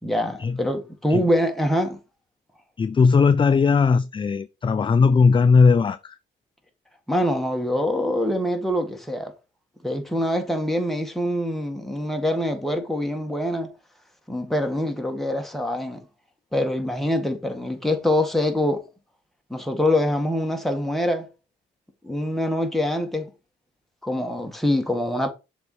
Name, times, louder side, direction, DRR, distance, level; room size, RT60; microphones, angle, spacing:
voice 1, 0.0-2.0 7.1-9.3 9.8-13.7 14.3-16.0 16.5-18.8 19.5-21.3 22.0-23.3 24.0-25.3, left 1 dB, ahead, 1.7 m, -24 dB
voice 2, 2.8-6.2, left 5 dB, 25° left, 0.4 m, -18 dB
6.7 x 4.1 x 4.7 m
cardioid pair, 90°, 20 cm